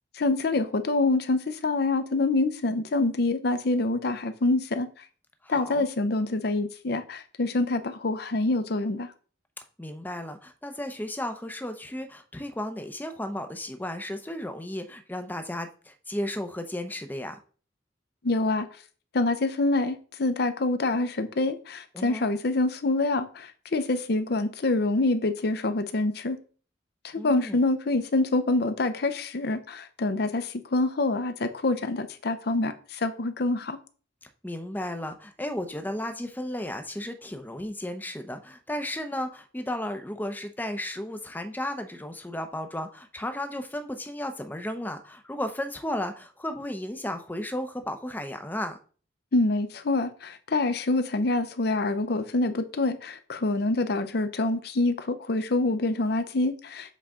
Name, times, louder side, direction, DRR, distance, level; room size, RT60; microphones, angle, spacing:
voice 1, 0.2-4.9 5.5-9.1 18.2-18.7 19.1-26.4 27.2-33.8 49.3-56.9, left 2 dB, 60° left, 10 dB, 0.6 m, -26 dB
voice 2, 5.4-5.9 9.8-17.4 21.9-22.2 27.2-27.6 34.4-48.8, left 1 dB, 10° left, 7 dB, 0.6 m, -34 dB
7.4 x 4.1 x 3.6 m, 0.41 s
head